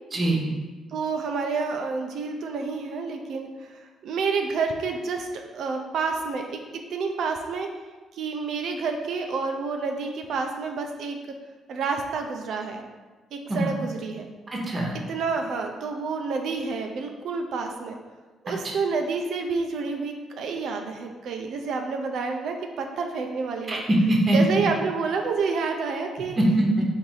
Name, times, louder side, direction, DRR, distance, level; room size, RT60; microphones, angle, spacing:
voice 1, 0.1-0.4 13.5-13.7 14.5-14.9 23.7-24.4 26.4-26.8, right 1 dB, 35° right, -1 dB, 0.9 m, -22 dB
voice 2, 0.9-5.3 5.5-6.6 6.9-7.7 8.1-11.2 11.7-12.8 13.3-14.3 15.1-18.0 18.4-23.8 24.3-26.4, right 4 dB, 75° right, 3 dB, 0.4 m, -29 dB
4.0 x 2.6 x 4.7 m, 1.3 s
cardioid pair, 90°, 0 cm